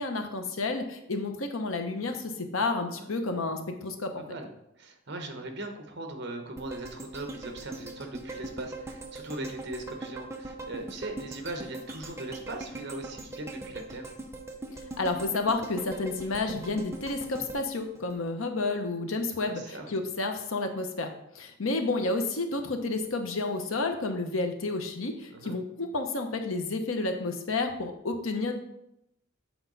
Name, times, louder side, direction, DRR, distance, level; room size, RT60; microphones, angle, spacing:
voice 1, 0.0-4.2 15.0-28.5, left 3 dB, 85° left, 5 dB, 0.9 m, -31 dB
voice 2, 4.2-4.5 4.8-14.0 19.5-19.9 25.3-25.6, right 2 dB, 55° right, 4 dB, 1.1 m, -39 dB
sound 1, 6.6-18.8 19.2-19.3, right 2 dB, 15° right, 0.7 m, -41 dB
8.0 x 4.7 x 4.0 m, 0.81 s
head